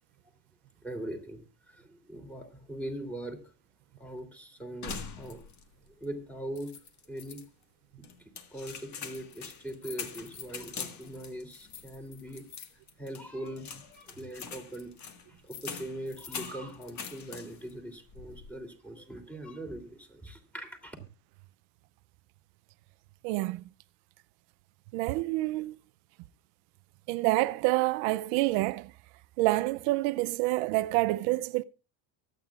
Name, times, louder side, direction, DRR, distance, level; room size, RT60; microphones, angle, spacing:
voice 1, 0.8-1.4 1.7-3.4 4.0-5.4 6.0-6.7 7.1-7.4 8.5-12.4 13.0-14.9 15.4-20.9, right 1 dB, 5° left, 2.9 m, -41 dB
sound 1, 4.8-5.7 6.0-6.1 6.6-7.4 8.0-17.7 18.1-18.6, left 6 dB, 35° left, 1.6 m, -43 dB
voice 2, 23.2-23.6 24.9-25.8 27.1-28.9 29.4-31.6, right 19 dB, 85° right, 0.7 m, -27 dB
23.5 x 9.2 x 2.4 m
cardioid pair, 135°, 50 cm